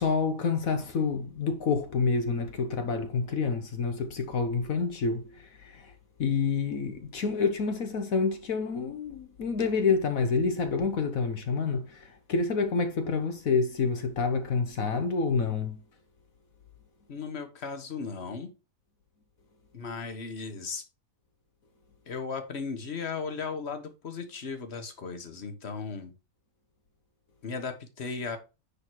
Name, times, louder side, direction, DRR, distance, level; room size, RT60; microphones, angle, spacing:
voice 1, 0.0-5.9 6.2-15.8, left 4 dB, 60° left, 1.3 m, -28 dB
voice 2, 17.1-18.5 19.7-20.8 22.1-26.1 27.4-28.4, left 5 dB, 40° left, 1.4 m, -36 dB
9.9 x 4.0 x 4.6 m
omnidirectional pair, 1.8 m